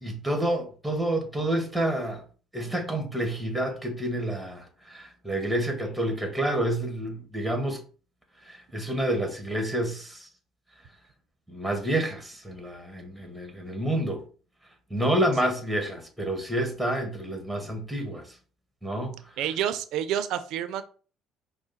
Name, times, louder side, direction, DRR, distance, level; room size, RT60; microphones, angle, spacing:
voice 1, 0.0-2.2 2.5-7.8 8.4-10.3 11.5-14.2 14.9-18.3 18.8-19.2, right 1 dB, 5° right, 1.4 m, -29 dB
voice 2, 19.4-20.8, right 10 dB, 70° right, 0.5 m, -28 dB
4.8 x 2.1 x 4.1 m
supercardioid pair, 70°, 0 cm